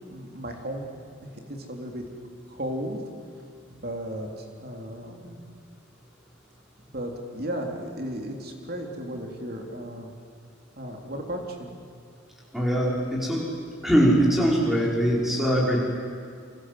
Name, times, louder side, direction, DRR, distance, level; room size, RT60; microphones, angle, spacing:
voice 1, 0.1-0.9 1.2-2.0 2.5-3.0 3.7-5.4 6.9-10.1 10.8-11.7, right 1 dB, 50° right, 2 dB, 3.5 m, -35 dB
voice 2, 12.5-13.4 13.8-15.8, equal, ahead, -3 dB, 5.3 m, -22 dB
28.0 x 26.0 x 7.8 m, 2.3 s
head